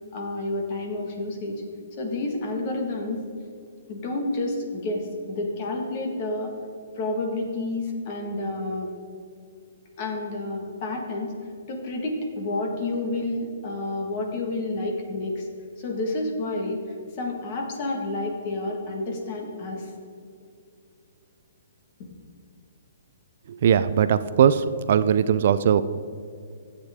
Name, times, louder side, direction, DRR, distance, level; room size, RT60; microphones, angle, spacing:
voice 1, 0.1-1.6 2.0-3.2 3.9-6.5 7.0-8.9 10.0-11.3 11.7-15.5 15.8-16.8 17.2-19.9, left 2 dB, 30° left, 2 dB, 1.6 m, -29 dB
voice 2, 23.6-25.8, right 8 dB, 45° right, 13 dB, 0.3 m, -19 dB
13.5 x 8.2 x 3.6 m, 2.4 s
hypercardioid pair, 170°, 0 cm